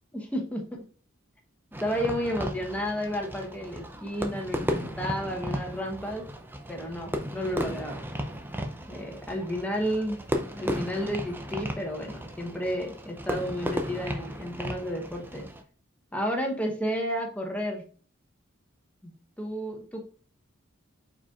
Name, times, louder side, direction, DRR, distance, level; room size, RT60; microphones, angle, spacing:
voice 1, 0.1-0.8 1.8-6.3 6.7-8.0 8.9-10.2 10.6-15.5 16.1-17.9 19.0-20.0, equal, 5° left, 1 dB, 0.9 m, -32 dB
Fireworks, 1.7-15.6, equal, 10° right, 0.4 m, -35 dB
4.8 x 4.3 x 2.3 m, 0.41 s
head